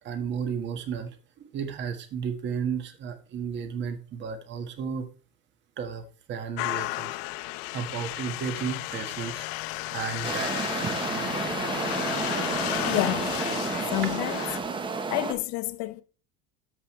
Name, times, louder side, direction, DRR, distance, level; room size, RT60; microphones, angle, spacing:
voice 1, 0.0-5.1 5.8-9.5 9.9-10.9, right 7 dB, 40° right, 1.6 m, -34 dB
sound 1, 6.6-14.6, left 20 dB, 90° left, 0.5 m, -33 dB
sound 2, 10.2-15.3, right 4 dB, 15° right, 1.0 m, -31 dB
voice 2, 12.8-13.3 13.9-14.6 15.1-16.0, left 17 dB, 60° left, 0.9 m, -29 dB
14.0 x 5.5 x 3.2 m
cardioid pair, 145°, 29 cm